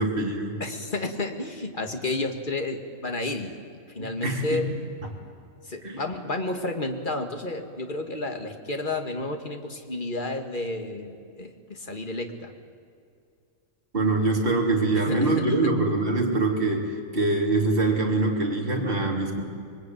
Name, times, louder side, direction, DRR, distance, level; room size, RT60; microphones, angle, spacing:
voice 1, 0.0-0.6 4.0-4.7 5.8-6.0 13.9-19.4, right 2 dB, 40° right, -1 dB, 3.5 m, -24 dB
voice 2, 0.6-3.6 3.9-4.7 5.6-12.5 14.9-15.7, left 2 dB, 35° left, 4 dB, 2.2 m, -31 dB
26.0 x 22.0 x 9.4 m, 2.3 s
omnidirectional pair, 1.4 m